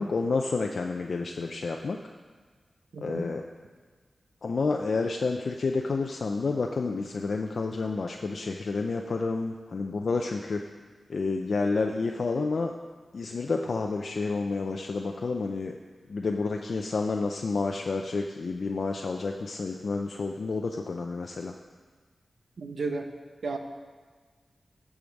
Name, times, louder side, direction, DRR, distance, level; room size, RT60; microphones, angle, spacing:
voice 1, 0.0-2.0 3.0-3.4 4.4-10.6 11.1-12.7 13.1-15.8 16.1-21.5, left 3 dB, 65° left, 3 dB, 0.5 m, -29 dB
voice 2, 2.9-3.3 22.6-23.1 23.4-23.6, right 3 dB, 75° right, 5 dB, 0.9 m, -33 dB
14.5 x 5.0 x 5.2 m, 1.5 s
cardioid pair, 65°, 0 cm